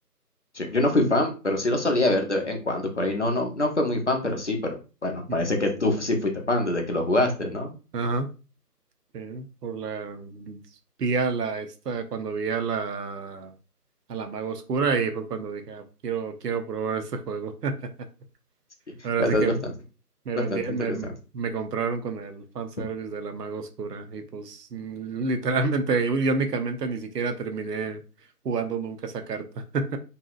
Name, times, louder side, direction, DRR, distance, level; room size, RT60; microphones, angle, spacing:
voice 1, 0.5-7.7 18.9-19.7 20.4-20.8 21.0-21.1, left 1 dB, 50° left, 3 dB, 0.5 m, -25 dB
voice 2, 7.9-8.3 9.1-10.6 11.0-13.5 14.1-17.9 19.0-19.5 20.3-21.1 21.3-28.0 28.4-29.4 29.7-30.0, right 4 dB, 80° right, 7 dB, 0.6 m, -29 dB
2.7 x 2.0 x 2.4 m, 0.33 s
figure-of-eight pair, 160°, 47 cm